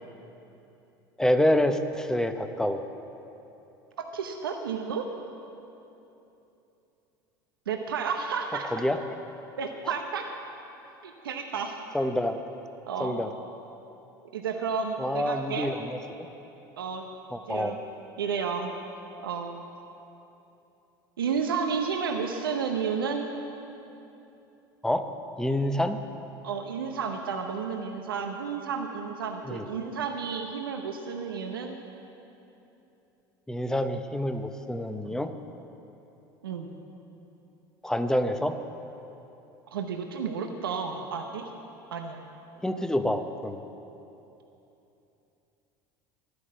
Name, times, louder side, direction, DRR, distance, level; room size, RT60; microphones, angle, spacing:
voice 1, 1.2-2.9 8.7-9.0 11.9-12.4 13.0-13.3 15.0-16.3 17.3-17.8 24.8-25.1 25.4-26.0 29.5-29.7 33.5-35.3 37.8-38.6 42.6-43.6, left 1 dB, 5° left, 8 dB, 0.9 m, -27 dB
voice 2, 4.0-5.1 7.7-8.7 9.6-10.3 11.0-11.8 12.9-13.2 14.3-15.7 16.8-17.1 17.5-17.8 18.2-18.7 19.2-19.6 21.2-23.3 26.4-31.7 35.1-35.2 36.4-36.7 39.7-41.5 41.9-42.2, right 6 dB, 90° right, 4 dB, 0.8 m, -31 dB
12.5 x 9.5 x 7.5 m, 3.0 s
hypercardioid pair, 80°, 12 cm